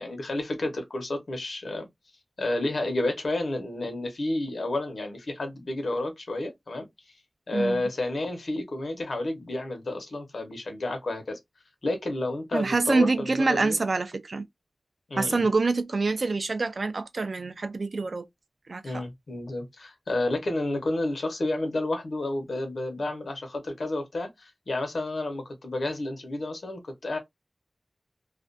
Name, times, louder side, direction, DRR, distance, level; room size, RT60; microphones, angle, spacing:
voice 1, 0.0-1.9 2.4-6.8 7.5-11.4 11.8-13.8 15.1-15.5 18.8-27.2, left 2 dB, 90° left, 0.8 m, -30 dB
voice 2, 7.5-7.9 12.5-14.4 15.2-18.2 18.7-19.0, right 3 dB, 75° right, 0.3 m, -26 dB
2.4 x 2.1 x 2.5 m
wide cardioid pair, 75°, 0 cm